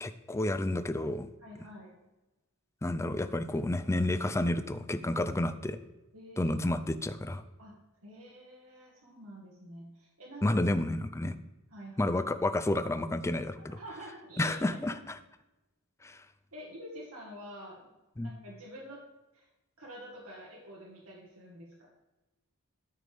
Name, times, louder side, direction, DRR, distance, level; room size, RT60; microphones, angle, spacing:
voice 1, 0.0-1.3 2.8-5.8 6.4-7.4 10.4-11.3 12.0-13.8 14.4-15.2 16.0-16.2 18.2-18.3, left 1 dB, 15° left, 11 dB, 0.4 m, -30 dB
voice 2, 1.4-1.9 6.1-6.5 7.6-7.7 8.0-10.6 11.7-12.2 13.7-14.8 16.5-17.9 18.2-19.0 19.3-19.5 19.8-21.9, equal, 90° right, -4 dB, 1.6 m, -47 dB
13.0 x 4.9 x 3.5 m, 1.0 s
head